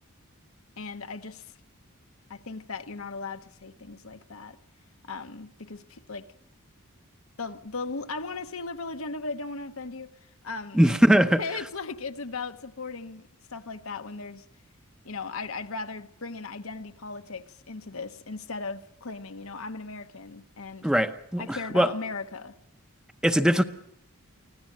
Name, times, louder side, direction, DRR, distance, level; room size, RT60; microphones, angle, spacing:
voice 1, 0.8-1.5 2.3-4.6 5.1-6.3 7.4-10.1 10.4-10.8 11.2-13.2 13.5-14.4 15.0-20.9 21.4-22.5, left 4 dB, 70° left, 1.1 m, -37 dB
voice 2, 10.7-11.4 20.8-21.9 23.2-23.6, equal, 5° right, 0.8 m, -21 dB
24.5 x 16.5 x 7.5 m
head